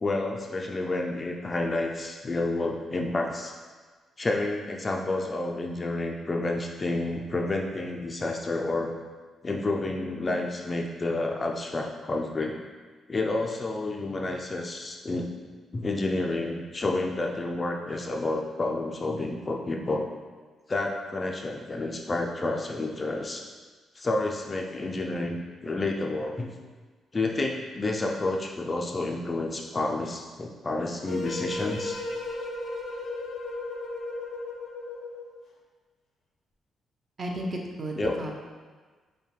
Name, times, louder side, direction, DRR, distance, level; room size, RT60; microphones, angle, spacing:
voice 1, 0.0-3.5 4.2-8.9 9.4-12.5 13.1-15.3 15.7-20.1 20.7-23.4 24.0-26.5 27.1-32.0 38.0-38.2, left 2 dB, 30° left, 1 dB, 0.4 m, -30 dB
sound 1, 31.1-35.4, left 2 dB, 75° left, 0.7 m, -35 dB
voice 2, 37.2-38.3, right 1 dB, 40° right, 1 dB, 0.6 m, -33 dB
5.4 x 2.2 x 3.2 m, 1.4 s
cardioid pair, 105°, 0 cm